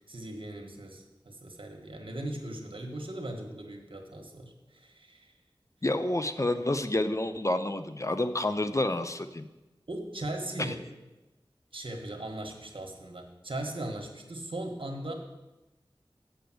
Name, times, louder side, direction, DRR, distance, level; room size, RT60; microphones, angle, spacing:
voice 1, 0.1-5.3 9.9-10.8 11.7-15.1, right 1 dB, 70° right, 2 dB, 1.5 m, -38 dB
voice 2, 5.8-9.5, left 1 dB, 35° left, 9 dB, 0.6 m, -29 dB
6.8 x 6.6 x 7.7 m, 1.0 s
wide cardioid pair, 50°, 9 cm